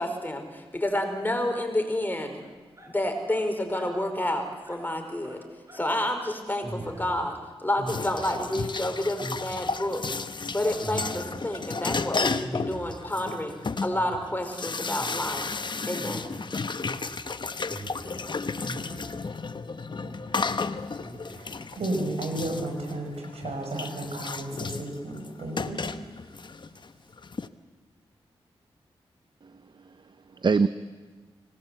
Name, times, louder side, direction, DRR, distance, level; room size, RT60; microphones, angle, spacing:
voice 1, 0.0-2.4 2.9-5.4 5.7-10.0 10.5-13.5 13.8-15.5 15.9-16.3, left 1 dB, 20° left, 4 dB, 4.8 m, -29 dB
sound 1, 2.4-2.9 3.3-3.9 4.2-4.9 5.2-5.9 6.2-6.3 6.6-7.4 7.8-8.6 9.2-10.0 10.8-11.6 12.4-13.2 13.9-14.5 15.0-15.6 16.0-19.4 20.0-20.6 21.0-21.9, right 1 dB, 30° right, 5.6 m, -42 dB
sound 2, 7.9-27.5, left 4 dB, 45° left, 1.0 m, -33 dB
voice 2, 21.3-25.8, right 1 dB, 85° right, 3 dB, 6.1 m, -33 dB
voice 3, 29.4-30.7, right 4 dB, 45° right, 13 dB, 0.7 m, -26 dB
26.0 x 18.5 x 8.3 m, 1.4 s
cardioid pair, 55°, 10 cm